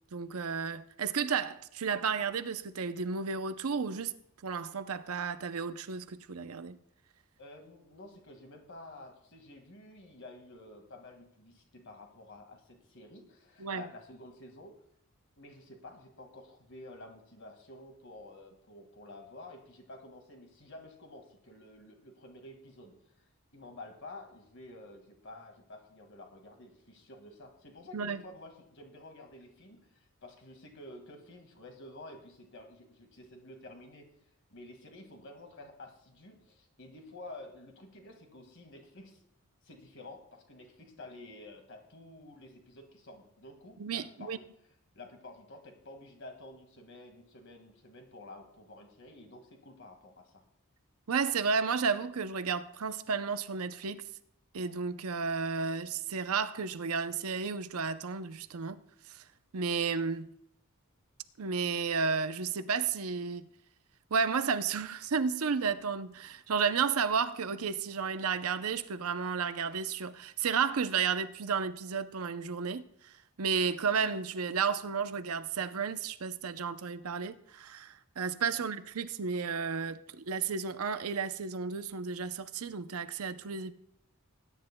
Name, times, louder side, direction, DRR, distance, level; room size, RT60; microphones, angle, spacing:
voice 1, 0.1-4.1 4.4-6.8 13.6-13.9 27.9-28.2 43.8-44.4 51.1-54.0 54.5-58.8 59.1-59.2 59.5-60.3 61.4-63.5 64.1-83.7, right 5 dB, 75° right, 0.6 m, -32 dB
voice 2, 7.4-14.8 15.4-22.9 23.5-34.1 34.5-39.2 39.6-44.4 45.0-50.4 78.3-78.6, left 2 dB, 55° left, 1.9 m, -50 dB
19.5 x 10.0 x 2.2 m
head